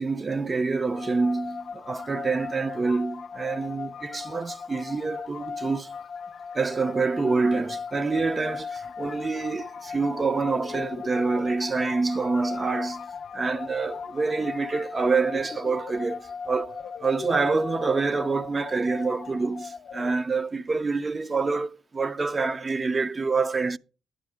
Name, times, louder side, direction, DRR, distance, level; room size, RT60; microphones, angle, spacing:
voice 1, 0.0-5.9 6.5-23.8, right 4 dB, 30° right, 0.5 m, -27 dB
sound 1, 0.9-20.1, left 6 dB, 60° left, 0.6 m, -38 dB
11.0 x 8.4 x 4.8 m
cardioid pair, 90°, 0 cm